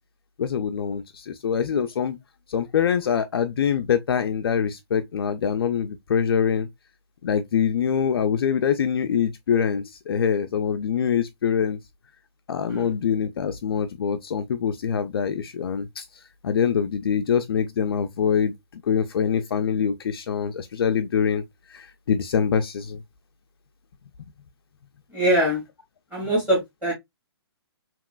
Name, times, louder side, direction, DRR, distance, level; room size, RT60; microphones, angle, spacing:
voice 1, 0.4-2.2 2.5-6.7 7.2-11.8 12.5-21.4 21.7-23.0, left 7 dB, 55° left, 0.4 m, -24 dB
voice 2, 25.1-25.6 26.1-26.9, right 1 dB, 10° right, 1.5 m, -23 dB
3.0 x 2.9 x 2.3 m
hypercardioid pair, 170°, 14 cm